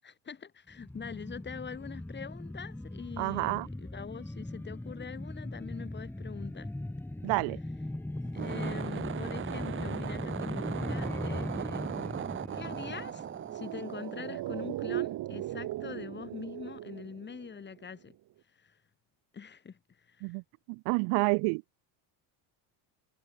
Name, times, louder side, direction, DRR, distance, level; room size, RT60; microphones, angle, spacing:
voice 1, 0.0-6.7 8.3-11.8 12.5-13.2 13.5-18.2 18.6-18.7 19.3-19.8 20.1-20.3, left 6 dB, 25° left, 7.5 m, -43 dB
sound 1, 0.7-13.9 14.3-14.4, left 1 dB, 5° left, 2.7 m, -39 dB
voice 2, 3.2-3.7 7.2-7.6 20.2-20.4 20.7-21.6, right 37 dB, 80° right, 0.7 m, -29 dB
sound 2, 8.2-14.8, right 9 dB, 25° right, 1.1 m, -38 dB
sound 3, 13.3-17.9 18.1-18.2, right 15 dB, 50° right, 2.7 m, -38 dB
cardioid pair, 145°, 45 cm